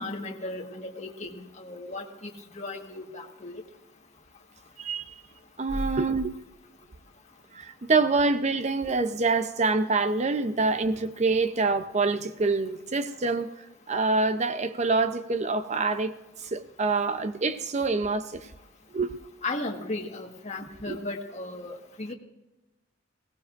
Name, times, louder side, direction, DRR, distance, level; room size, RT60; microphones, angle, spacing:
voice 1, 0.0-3.6 19.4-22.1, left 2 dB, 35° left, 1.5 m, -36 dB
voice 2, 4.8-5.1 5.6-6.3 7.5-13.5 13.9-16.1 16.4-18.5 18.9-19.1 20.9-21.0, right 3 dB, 35° right, 0.6 m, -26 dB
21.0 x 17.0 x 2.5 m
head